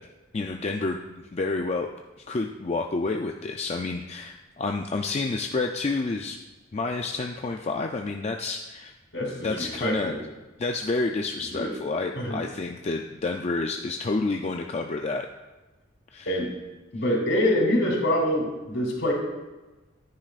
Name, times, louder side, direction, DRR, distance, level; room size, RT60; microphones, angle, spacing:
voice 1, 0.3-1.9 2.2-6.4 6.7-8.9 9.4-10.1 10.6-15.3 16.1-16.4, left 3 dB, 35° left, 3 dB, 0.4 m, -29 dB
voice 2, 9.1-10.2 11.5-11.7 12.1-12.4 16.2-16.5 16.9-19.1, left 1 dB, 65° left, -2 dB, 3.2 m, -25 dB
14.0 x 9.6 x 2.5 m, 1.1 s
head